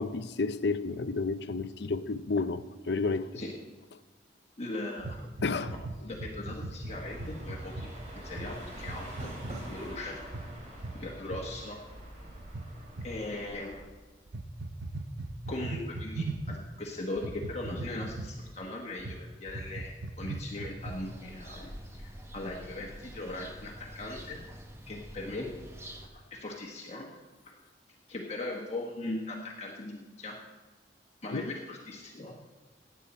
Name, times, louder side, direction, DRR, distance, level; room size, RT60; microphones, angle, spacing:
voice 1, 0.0-3.4 5.4-5.7 31.3-31.5, left 3 dB, 60° left, 0.6 m, -31 dB
voice 2, 4.6-5.3 6.0-9.3 9.7-10.2 10.9-11.8 13.0-13.8 15.5-24.4 24.9-25.5 26.1-27.1 27.4-27.5 28.1-30.4 31.2-32.3, left 2 dB, 35° left, 1.3 m, -39 dB
sound 1, 5.0-7.9 8.3-8.5 8.8-9.6 10.3-10.5 10.8-11.0 11.2-11.4 12.5-13.1 14.3-16.6 17.2-18.5 19.0-19.2 19.5-21.1, right 2 dB, 85° right, 0.8 m, -39 dB
sound 2, 6.9-13.8, right 1 dB, 40° right, 3.0 m, -45 dB
sound 3, 20.8-26.1, equal, 15° right, 0.9 m, -47 dB
17.0 x 8.4 x 4.3 m
head